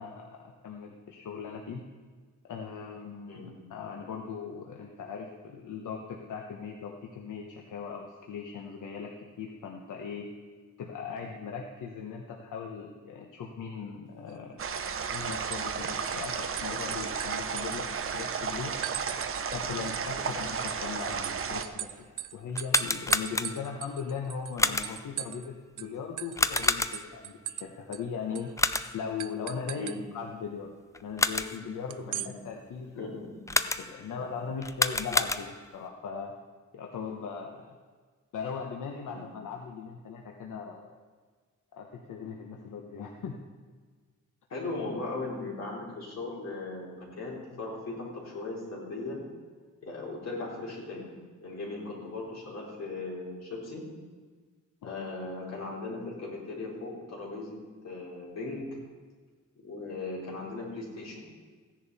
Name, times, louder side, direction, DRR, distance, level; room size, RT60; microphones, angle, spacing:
voice 1, 0.0-1.8 2.4-9.1 9.4-10.3 10.8-14.5 15.1-18.8 19.5-28.5 28.9-30.7 31.0-33.1 33.8-36.3 36.7-37.7 38.3-40.8 41.8-43.4 54.8-54.9, left 6 dB, 80° left, 1 dB, 1.2 m, -39 dB
sound 1, 14.3-14.6 14.9-16.3 16.6-18.3 18.8-19.6 19.9-25.5 25.8-25.9 26.2-27.7 27.9-28.0 28.4-28.5 29.2-30.0 31.9-32.3, right 13 dB, 80° right, 0.5 m, -39 dB
sound 2, 14.6-21.6, right 6 dB, 45° right, 0.8 m, -33 dB
sound 3, 22.5-23.8 24.6-25.1 26.4-27.2 28.6-29.1 30.9-31.7 33.5-34.1 34.6-35.8, left 3 dB, 10° left, 0.3 m, -29 dB
voice 2, 31.9-32.3 33.0-33.4 34.1-34.3 39.1-39.2 44.5-49.2 49.8-51.1 51.4-53.8 54.8-57.6 57.8-58.7 59.6-61.2, left 3 dB, 55° left, -4 dB, 4.1 m, -38 dB
15.5 x 10.5 x 4.2 m, 1.5 s
wide cardioid pair, 150°, 31 cm